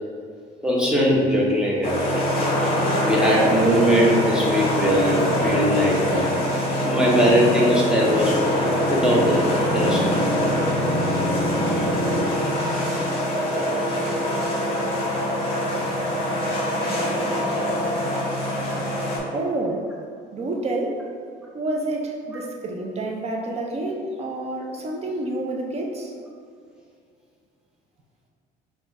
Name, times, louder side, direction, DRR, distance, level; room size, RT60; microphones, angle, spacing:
voice 1, 0.6-2.0 3.0-6.2 6.8-8.4 8.9-9.4 9.7-10.2, equal, 5° right, -5 dB, 1.0 m, -20 dB
sound 1, 1.8-19.2, equal, 30° left, 1.4 m, -23 dB
voice 2, 19.3-19.9 20.3-21.0 21.5-26.1, right 2 dB, 35° right, 1 dB, 0.6 m, -28 dB
5.1 x 2.5 x 3.6 m, 2.3 s
cardioid pair, 110°, 18 cm